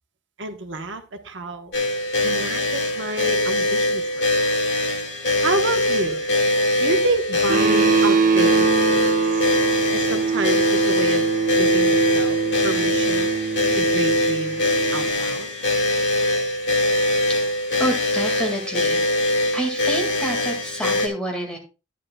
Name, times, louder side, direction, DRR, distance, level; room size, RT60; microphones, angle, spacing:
voice 1, 0.4-1.7 2.2-4.3 5.4-6.3 6.8-9.4 9.9-11.3 11.6-12.4 12.6-13.3 13.7-14.6 14.9-15.5, right 2 dB, 85° right, 1.2 m, -29 dB
sound 1, 1.7-21.1, left 1 dB, 70° left, 2.0 m, -22 dB
sound 2, 7.5-15.1, right 5 dB, 45° right, 1.0 m, -22 dB
voice 2, 17.8-19.2 19.5-21.6, right 1 dB, 5° left, 2.0 m, -28 dB
10.5 x 10.0 x 2.3 m
head